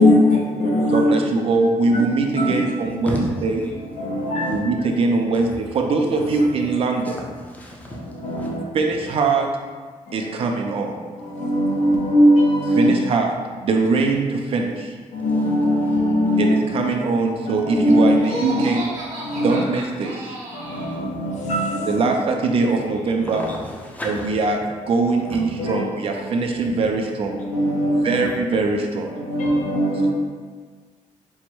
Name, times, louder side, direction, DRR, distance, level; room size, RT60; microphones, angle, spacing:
voice 1, 0.0-1.1 1.6-2.7 3.7-4.9 6.3-6.8 7.9-8.9 10.1-10.3 11.2-12.9 15.1-16.9 17.4-18.6 19.2-19.6 20.5-22.1 23.3-23.4 25.2-25.9 26.1-26.2 27.4-28.2 29.1-30.1, equal, 65° left, -1 dB, 0.7 m, -21 dB
voice 2, 0.9-3.6 4.5-7.2 8.7-9.5 10.1-10.9 12.8-13.3 13.6-14.7 16.4-18.8 19.4-20.1 21.8-23.4 24.0-24.6 24.9-27.3 28.0-29.1, right 3 dB, 45° right, 2 dB, 0.4 m, -21 dB
voice 3, 2.8-3.7 4.4-4.6 6.2-6.5 7.0-8.5 15.1-15.4 20.7-21.1 23.0-24.5, equal, 10° left, -3 dB, 0.6 m, -33 dB
Laughter, 18.2-21.0, right 1 dB, 75° right, 1.0 m, -32 dB
4.6 x 2.1 x 4.3 m, 1.5 s
cardioid pair, 175°, 13 cm